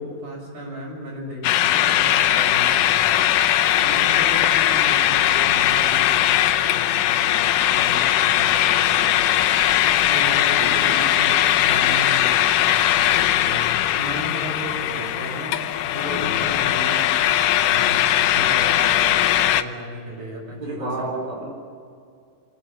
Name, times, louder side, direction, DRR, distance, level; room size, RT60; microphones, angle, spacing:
voice 1, 0.0-3.3 3.8-9.3 9.6-21.1, equal, 55° right, -1 dB, 8.3 m, -35 dB
sound 1, 1.4-19.6, left 12 dB, 75° left, 2.2 m, -19 dB
voice 2, 10.6-11.0 20.6-21.5, right 2 dB, 10° right, 0 dB, 4.3 m, -30 dB
27.0 x 17.5 x 7.6 m, 2.3 s
omnidirectional pair, 4.1 m